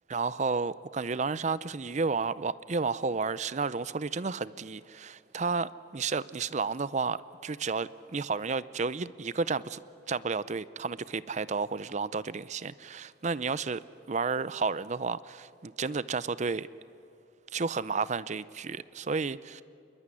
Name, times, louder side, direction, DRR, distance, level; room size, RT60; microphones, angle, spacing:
voice 1, 0.1-9.8 10.1-13.8 14.1-16.7 17.5-19.6, right 4 dB, 40° right, 17 dB, 0.6 m, -32 dB
26.5 x 22.0 x 9.9 m, 2.5 s
head